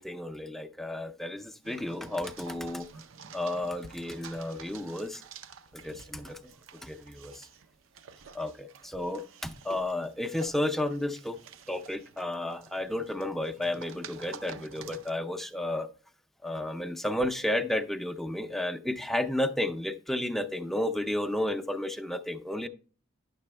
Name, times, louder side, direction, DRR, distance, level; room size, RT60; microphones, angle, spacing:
voice 1, 0.0-2.9 3.3-5.2 5.7-6.5 6.8-7.5 8.3-11.4 11.7-15.9 16.4-22.7, left 1 dB, ahead, 9 dB, 0.4 m, -32 dB
sound 1, 1.6-15.1, right 6 dB, 85° right, 0.6 m, -50 dB
9.7 x 6.8 x 3.2 m, 0.40 s
head